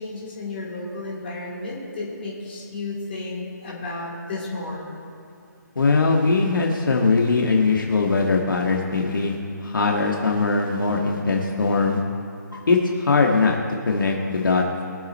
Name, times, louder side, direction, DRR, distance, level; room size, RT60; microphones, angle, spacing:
voice 1, 0.0-5.1, left 2 dB, 30° left, -4 dB, 3.5 m, -33 dB
voice 2, 5.8-9.4 9.6-12.0 12.7-13.6 13.9-14.6, left 4 dB, 80° left, 0 dB, 1.8 m, -20 dB
21.5 x 8.1 x 4.3 m, 2.8 s
hypercardioid pair, 170°, 11 cm